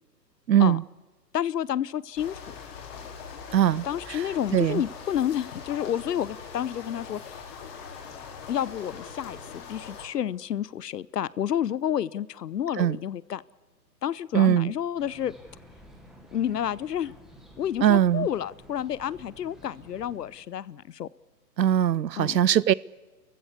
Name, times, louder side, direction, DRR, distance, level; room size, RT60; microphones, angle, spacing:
voice 1, 0.5-0.8 3.5-4.2 4.5-4.8 12.8-13.0 14.3-14.7 17.8-18.3 21.6-22.7, right 10 dB, 85° right, 0.7 m, -21 dB
voice 2, 1.3-2.4 3.7-7.4 8.5-13.4 14.0-15.3 16.3-17.1 17.6-21.1 22.2-22.4, left 10 dB, 70° left, 0.8 m, -30 dB
sound 1, 2.1-10.1, left 6 dB, 35° left, 4.1 m, -42 dB
sound 2, 15.0-20.4, equal, ahead, 0.8 m, -52 dB
29.5 x 15.0 x 8.3 m
hypercardioid pair, 155°, 50 cm